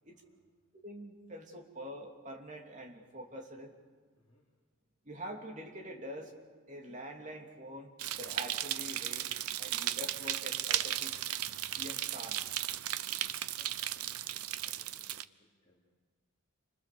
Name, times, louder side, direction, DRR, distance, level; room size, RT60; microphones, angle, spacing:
voice 1, 0.0-0.6 4.1-4.4 13.5-15.8, equal, 25° left, -6 dB, 4.0 m, -68 dB
voice 2, 0.7-3.7 5.0-6.3 6.7-9.3 9.6-11.1 11.8-12.4 13.1-13.2, equal, 35° right, 2 dB, 2.9 m, -45 dB
sound 1, 8.0-15.2, right 12 dB, 85° right, 0.7 m, -36 dB
29.0 x 25.0 x 6.9 m, 1.5 s
head